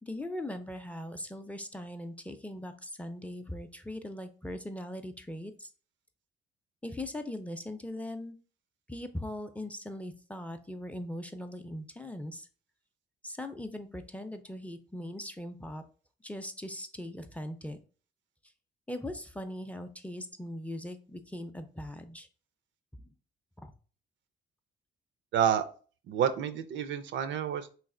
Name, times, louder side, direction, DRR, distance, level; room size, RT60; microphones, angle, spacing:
voice 1, 0.0-5.7 6.8-8.4 8.9-12.5 13.2-15.8 16.2-17.8 18.9-22.3 22.9-23.1 23.6-23.7, left 1 dB, 5° left, 8 dB, 0.5 m, -40 dB
voice 2, 25.3-25.6 26.1-27.7, right 9 dB, 70° right, 10 dB, 0.5 m, -29 dB
3.2 x 2.8 x 3.7 m, 0.38 s
cardioid pair, 90°, 20 cm